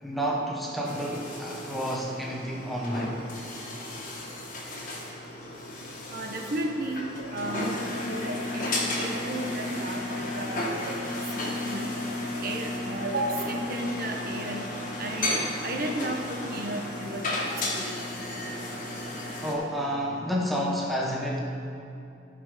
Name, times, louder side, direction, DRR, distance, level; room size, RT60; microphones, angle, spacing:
voice 1, 0.0-3.1 19.4-21.4, equal, ahead, -3 dB, 1.0 m, -30 dB
sound 1, 0.8-19.5, left 1 dB, 45° left, 1.6 m, -33 dB
voice 2, 6.1-7.8 8.0-11.9 12.4-14.6 15.0-17.9, right 1 dB, 55° right, 1 dB, 1.0 m, -34 dB
15.0 x 5.3 x 5.0 m, 2.6 s
head